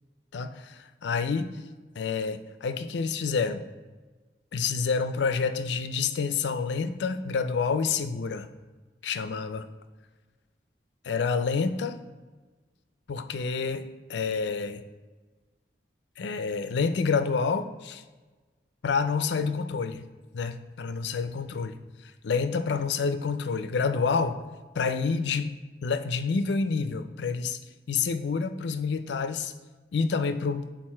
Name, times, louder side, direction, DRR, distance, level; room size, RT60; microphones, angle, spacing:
voice 1, 0.3-1.5 2.0-3.6 4.5-8.5 9.0-9.7 11.0-12.0 13.1-14.8 16.2-18.0 18.8-20.0 20.3-21.8 22.0-24.4 24.7-25.5 25.8-27.6 27.9-29.5 29.9-30.7, left 5 dB, 80° left, 10 dB, 0.4 m, -28 dB
6.4 x 4.0 x 4.3 m, 1.3 s
head